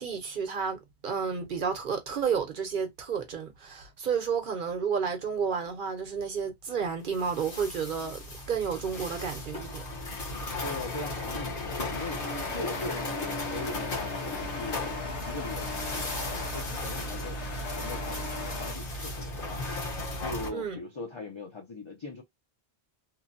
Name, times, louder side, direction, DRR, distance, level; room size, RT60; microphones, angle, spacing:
voice 1, 0.0-8.2 8.5-9.8 20.5-20.8, right 6 dB, 55° right, 0.8 m, -31 dB
sound 1, 7.1-20.5, left 2 dB, 55° left, 1.2 m, -36 dB
voice 2, 10.6-14.8 15.2-17.4 17.7-19.7 20.2-22.2, left 2 dB, 35° left, 0.5 m, -40 dB
sound 2, 11.7-18.7, left 4 dB, 85° left, 1.1 m, -39 dB
3.0 x 2.1 x 2.5 m
omnidirectional pair, 1.1 m